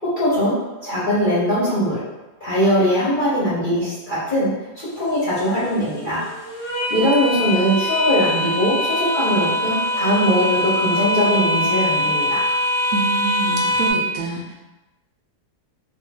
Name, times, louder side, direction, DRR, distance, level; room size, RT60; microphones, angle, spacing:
voice 1, 0.0-2.0 2.4-4.5 4.7-6.2 6.9-12.4, equal, 40° left, -10 dB, 0.7 m, -20 dB
sound 1, 4.9-13.9, equal, 85° left, 0.5 m, -23 dB
voice 2, 12.9-14.5, right 3 dB, 70° right, -3 dB, 1.0 m, -26 dB
4.3 x 2.3 x 2.3 m, 1.1 s
omnidirectional pair, 1.8 m